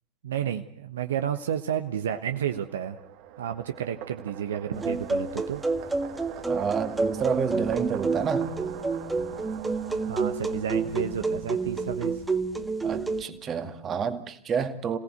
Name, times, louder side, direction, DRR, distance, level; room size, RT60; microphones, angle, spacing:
voice 1, 0.2-3.0 3.4-5.6 10.1-12.2, right 9 dB, 60° right, 1.1 m, -31 dB
sound 1, 1.6-12.3, right 11 dB, 45° right, 2.0 m, -44 dB
sound 2, 4.7-13.2, right 4 dB, 10° right, 1.5 m, -29 dB
voice 2, 6.5-8.5 12.8-15.0, right 7 dB, 25° right, 2.0 m, -29 dB
27.5 x 17.5 x 8.1 m
figure-of-eight pair, 90°, 0 cm